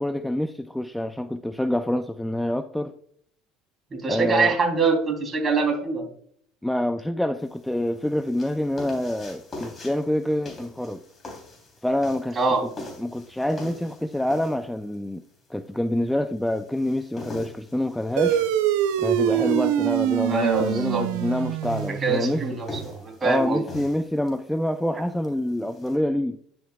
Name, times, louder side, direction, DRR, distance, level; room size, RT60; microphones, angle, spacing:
voice 1, 0.0-3.0 4.1-4.5 6.6-11.0 11.8-12.7 13.0-15.2 15.5-18.4 19.0-22.4 23.2-26.4, left 1 dB, 5° left, 0.4 m, -26 dB
voice 2, 3.9-6.0 12.3-12.6 20.3-21.0 22.0-23.6, right 4 dB, 30° right, 3.4 m, -24 dB
sound 1, 7.4-26.0, left 2 dB, 30° left, 3.4 m, -44 dB
sound 2, 18.2-23.0, right 11 dB, 80° right, 0.7 m, -25 dB
10.0 x 7.8 x 2.4 m
supercardioid pair, 95°, 0 cm